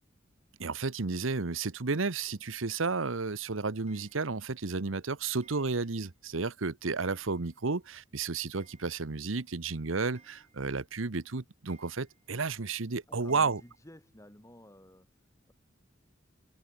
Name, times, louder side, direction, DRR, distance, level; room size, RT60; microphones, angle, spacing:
voice 1, 0.6-13.6, right 4 dB, 75° right, 1.1 m, -32 dB
Clock, 3.9-4.6 5.4-6.2 6.5-6.6 7.0-7.8 8.0-8.1 8.4-9.3 9.7-9.8 10.2-11.0 11.7-12.4 13.3-13.8, right 4 dB, 35° right, 6.6 m, -64 dB
voice 2, 13.1-15.5, left 1 dB, 15° left, 6.8 m, -53 dB
head